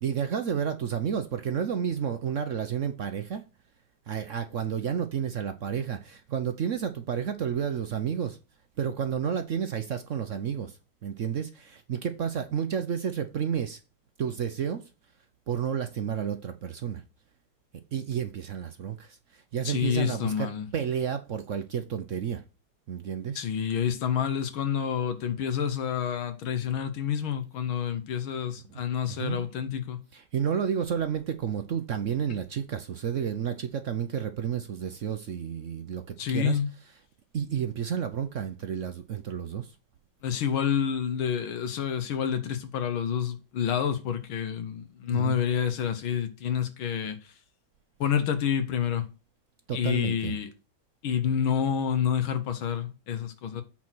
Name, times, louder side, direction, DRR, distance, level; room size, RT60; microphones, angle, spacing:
voice 1, 0.0-3.4 4.1-8.4 8.8-10.8 11.0-13.8 14.2-14.8 15.5-17.0 17.9-19.2 19.5-22.4 22.9-23.4 29.2-29.5 30.1-36.6 37.3-39.7 45.1-45.4 49.7-50.3, right 8 dB, 70° right, 0.7 m, -31 dB
voice 2, 19.6-20.7 23.4-30.0 36.2-36.7 40.2-47.3 48.0-49.1 49.7-50.5 51.0-53.6, left 8 dB, 80° left, 1.9 m, -28 dB
8.4 x 4.2 x 6.1 m
omnidirectional pair, 2.2 m